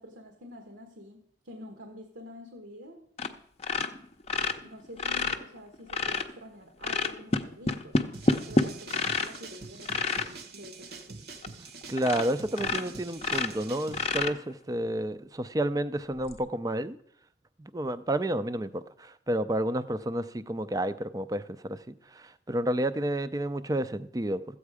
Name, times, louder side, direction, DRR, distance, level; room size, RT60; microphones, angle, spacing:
voice 1, 0.0-3.0 4.6-8.1 8.5-11.2, left 1 dB, 75° right, 1.3 m, -47 dB
sound 1, 3.2-3.3 3.6-6.3 6.8-9.4 9.8-10.3 10.9-11.0 11.4-11.5 12.0-12.3 12.5-14.7 16.2-16.3, left 3 dB, 35° left, 0.6 m, -28 dB
sound 2, 8.1-14.1, right 4 dB, 55° right, 1.0 m, -45 dB
voice 2, 11.9-17.0 17.7-21.9 22.5-24.4, right 1 dB, 20° right, 0.4 m, -30 dB
14.0 x 8.3 x 4.9 m
head